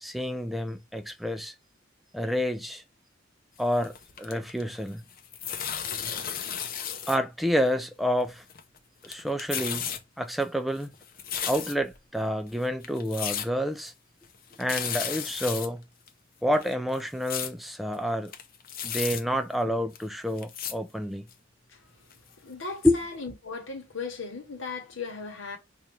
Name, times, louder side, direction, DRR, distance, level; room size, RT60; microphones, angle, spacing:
voice 1, 0.0-1.5 2.1-2.8 3.6-5.0 7.1-8.4 9.0-9.9 10.2-10.9 11.5-13.9 14.6-15.8 16.4-18.3 18.8-21.2 22.8-23.0, equal, ahead, 0.3 m, -28 dB
sound 1, 3.6-4.8 5.1-7.2 7.4-7.5 8.3-8.8 9.0-10.0 10.4-12.0 12.5-12.6 12.8-13.5 13.8-13.9 14.2-14.3 14.5-15.7 16.1-16.2 16.5-17.5 17.9-18.0 18.2-19.2 19.9-20.0 20.4-20.7 21.3-21.4 22.1-22.2 22.6-22.7 23.0-23.1, left 8 dB, 45° left, 0.6 m, -34 dB
voice 2, 22.4-25.6, left 4 dB, 70° left, 1.1 m, -37 dB
4.2 x 2.4 x 3.1 m
head